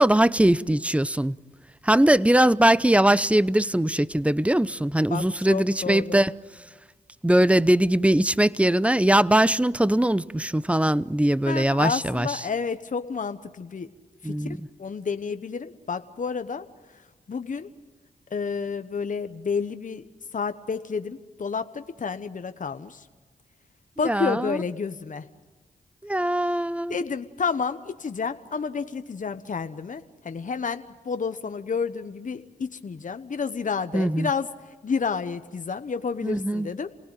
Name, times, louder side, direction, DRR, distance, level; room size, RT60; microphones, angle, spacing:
voice 1, 0.0-1.4 1.8-6.3 7.2-12.4 14.2-14.6 24.0-24.6 26.0-27.0 33.9-34.3 36.2-36.7, right 1 dB, 10° right, 0.7 m, -21 dB
voice 2, 5.1-6.2 11.5-13.9 14.2-16.6 17.3-17.7 18.3-20.1 20.3-23.0 24.0-25.3 26.9-34.5 34.8-36.9, left 5 dB, 50° left, 1.1 m, -30 dB
28.0 x 18.5 x 9.0 m
cardioid pair, 45°, 16 cm